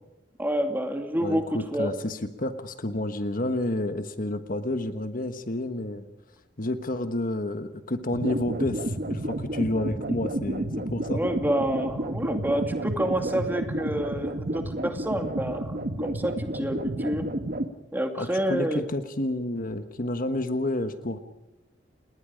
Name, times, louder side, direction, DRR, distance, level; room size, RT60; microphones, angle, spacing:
voice 1, 0.4-1.9 11.1-15.7 16.0-17.2 17.9-18.8, right 1 dB, 10° right, 5 dB, 2.4 m, -28 dB
voice 2, 1.2-6.0 6.6-11.2 18.2-21.2, left 1 dB, 50° left, 9 dB, 1.3 m, -30 dB
sound 1, 8.1-17.7, right 1 dB, 50° right, 1.4 m, -31 dB
30.0 x 19.5 x 5.1 m, 1.0 s
head